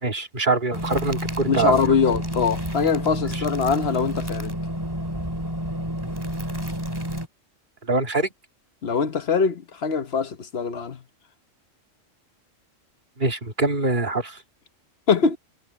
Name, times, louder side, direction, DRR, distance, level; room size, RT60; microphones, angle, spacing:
voice 1, 0.0-1.8 3.3-3.4 7.9-8.3 13.2-14.4, right 3 dB, 40° right, 2.2 m, -24 dB
sound 1, 0.7-7.3, equal, 20° right, 2.4 m, -30 dB
voice 2, 1.5-4.5 8.8-11.0 15.1-15.4, left 5 dB, 55° left, 1.1 m, -22 dB
omnidirectional pair, 1.3 m